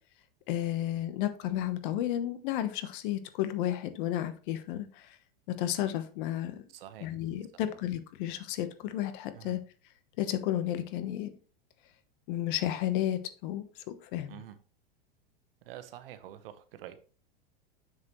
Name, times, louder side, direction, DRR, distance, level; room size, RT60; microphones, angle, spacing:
voice 1, 0.5-5.2 5.5-6.5 7.0-9.6 10.2-11.4 12.3-14.4, left 12 dB, 60° left, 1.1 m, -32 dB
voice 2, 6.7-7.1 9.3-9.5 14.3-14.5 15.6-17.0, right 12 dB, 75° right, 1.1 m, -46 dB
7.2 x 6.4 x 3.1 m
supercardioid pair, 125°, 29 cm